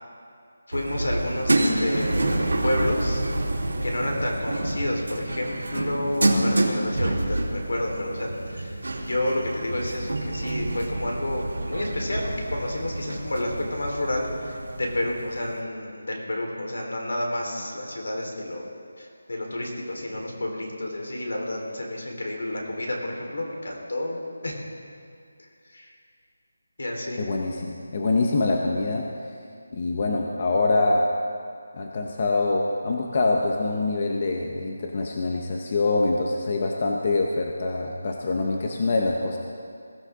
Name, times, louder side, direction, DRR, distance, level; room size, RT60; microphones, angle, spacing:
voice 1, 0.7-3.2 3.8-18.6 19.0-24.2 24.4-24.6 25.7-25.9 26.8-27.2, left 1 dB, 70° left, 0 dB, 3.9 m, -30 dB
sound 1, 0.7-15.5, right 1 dB, 85° right, 3.1 m, -28 dB
voice 2, 27.2-29.1 29.7-31.1 31.7-39.4, left 3 dB, 25° left, 1 dB, 0.8 m, -24 dB
21.5 x 14.5 x 3.7 m, 2.3 s
figure-of-eight pair, 180°, 0 cm